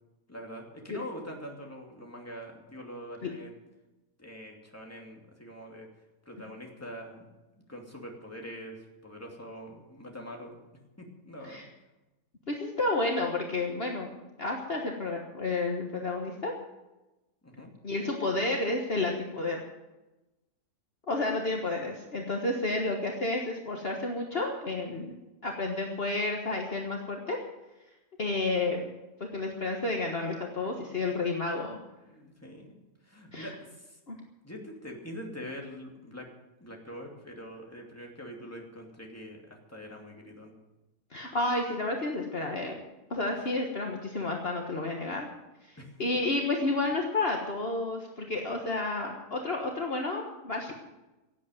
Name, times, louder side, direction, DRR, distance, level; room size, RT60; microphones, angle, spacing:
voice 1, 0.3-3.5 4.2-5.9 6.3-7.2 7.7-10.6 11.0-11.6 17.4-17.7 30.7-31.1 32.1-34.0 34.4-36.3 36.6-40.5 45.8-46.0, equal, 10° left, 0 dB, 2.7 m, -44 dB
voice 2, 12.5-14.1 14.4-16.5 17.8-19.6 21.1-25.1 25.4-27.4 28.2-28.8 29.2-31.8 33.3-33.5 34.1-34.2 41.1-42.8 43.1-45.3 45.6-45.7 46.0-50.7, left 2 dB, 40° left, 1 dB, 1.6 m, -31 dB
16.5 x 8.5 x 9.2 m, 1.0 s
omnidirectional pair, 1.6 m